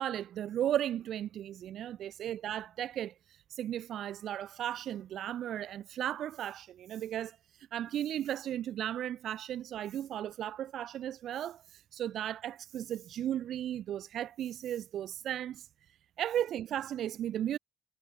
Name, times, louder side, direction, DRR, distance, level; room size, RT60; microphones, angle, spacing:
voice 1, 0.0-7.4 7.7-15.7 16.2-17.6, right 11 dB, 70° right, 5.0 m, -35 dB
cardioid pair, 90°, 0 cm